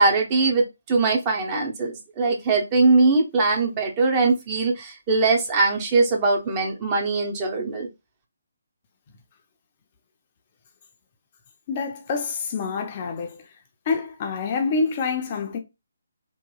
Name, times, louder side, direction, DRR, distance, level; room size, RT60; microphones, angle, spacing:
voice 1, 0.0-7.9, right 3 dB, 25° right, 0.7 m, -21 dB
voice 2, 11.7-13.4 13.9-15.6, left 4 dB, 30° left, 0.5 m, -26 dB
2.8 x 2.6 x 2.3 m
figure-of-eight pair, 145°, 0 cm